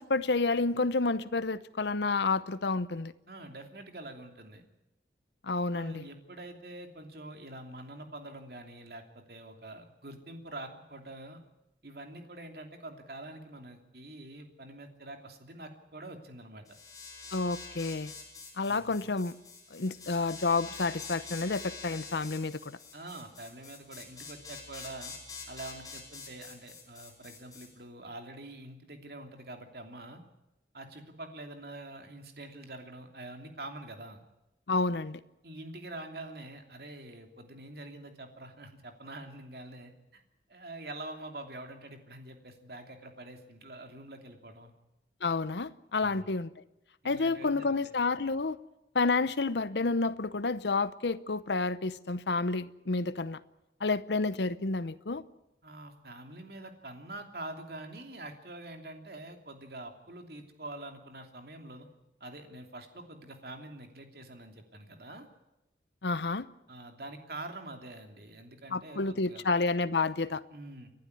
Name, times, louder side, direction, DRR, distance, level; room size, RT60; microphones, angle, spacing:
voice 1, 0.0-3.1 5.4-6.1 17.3-18.1 18.6-19.4 19.7-22.8 34.7-35.2 45.2-46.5 47.0-48.6 48.9-53.4 53.8-55.2 66.0-66.5 68.7-70.4, left 3 dB, 75° left, 0.8 m, -30 dB
voice 2, 3.3-4.6 5.7-11.4 11.8-16.6 18.7-19.0 22.9-25.1 25.5-30.2 30.7-34.2 35.4-40.2 40.5-44.7 46.0-46.3 47.0-47.8 55.6-61.9 62.2-65.3 66.7-69.4 70.5-70.9, right 2 dB, 60° right, 2.9 m, -45 dB
sound 1, 16.7-27.7, left 4 dB, 20° left, 5.1 m, -46 dB
29.5 x 11.5 x 9.6 m
head